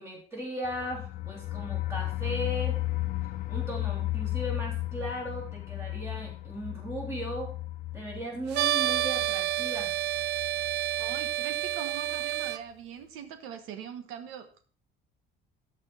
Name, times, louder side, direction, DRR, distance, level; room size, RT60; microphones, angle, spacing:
voice 1, 0.0-2.8 3.2-7.5 7.9-9.9, equal, 15° right, -2 dB, 3.4 m, -37 dB
sound 1, 0.7-11.4 11.7-11.8 12.1-12.2, left 16 dB, 45° left, 0.5 m, -35 dB
sound 2, 8.5-12.6, right 14 dB, 60° right, 0.5 m, -29 dB
voice 2, 11.0-14.6, right 8 dB, 85° right, 8 dB, 1.3 m, -42 dB
13.5 x 4.8 x 5.7 m, 0.40 s
cardioid pair, 180°, 21 cm